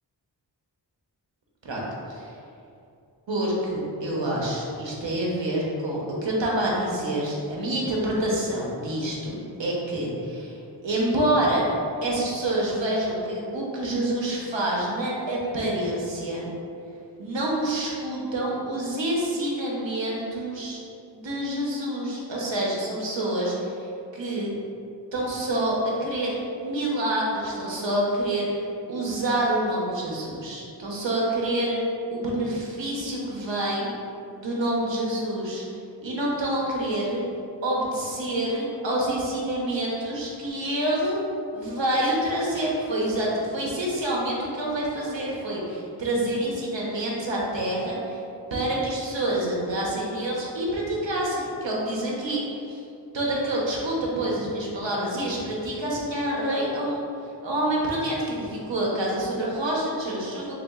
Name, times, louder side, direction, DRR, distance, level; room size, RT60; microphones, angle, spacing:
voice 1, 3.3-10.6 10.8-11.6 12.0-16.5 17.2-20.8 21.1-24.6 25.1-26.3 26.6-28.5 28.9-31.8 32.1-33.9 34.3-35.6 36.0-37.2 37.6-41.2 41.5-48.2 48.5-52.8 53.1-57.0 57.4-60.6, right 1 dB, 75° right, -4 dB, 1.0 m, -27 dB
3.5 x 3.0 x 3.6 m, 2.6 s
cardioid pair, 40°, 45 cm